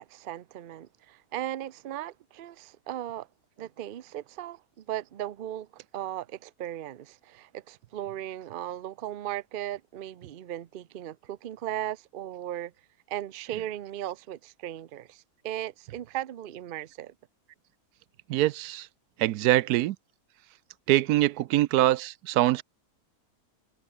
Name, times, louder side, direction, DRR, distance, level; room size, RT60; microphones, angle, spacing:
voice 1, 0.0-3.3 3.6-12.7 13.1-17.1, right 12 dB, 55° right, 0.6 m, -37 dB
voice 2, 18.3-18.9 19.2-20.0 20.9-22.6, right 15 dB, 85° right, 1.1 m, -23 dB
omnidirectional pair, 1.6 m